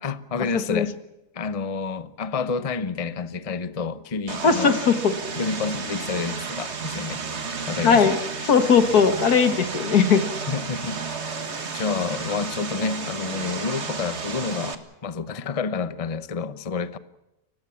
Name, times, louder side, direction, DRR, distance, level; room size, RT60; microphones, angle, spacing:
voice 1, 0.0-1.0 1.3-4.8 5.4-7.2 7.7-8.1 10.5-11.2 11.7-17.0, left 5 dB, 30° left, 0.9 m, -29 dB
Vehicle, 4.3-14.8, right 5 dB, 45° right, 1.9 m, -32 dB
voice 2, 4.4-5.1 7.8-8.2 8.5-10.2, left 6 dB, 80° left, 2.1 m, -18 dB
29.5 x 16.0 x 7.2 m
omnidirectional pair, 1.6 m